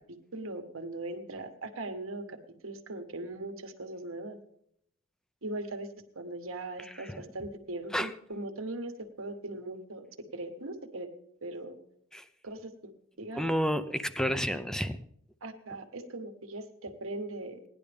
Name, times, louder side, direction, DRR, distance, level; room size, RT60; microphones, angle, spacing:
voice 1, 0.0-4.4 5.4-5.9 6.1-8.9 9.2-10.1 10.3-11.1 11.4-11.8 12.4-12.9 13.2-13.4 15.4-17.6, right 2 dB, 80° right, 6 dB, 1.4 m, -39 dB
voice 2, 6.8-7.2 7.9-8.1 12.1-12.3 13.4-15.0, equal, 5° left, 11 dB, 0.5 m, -30 dB
17.5 x 10.5 x 3.5 m, 0.72 s
head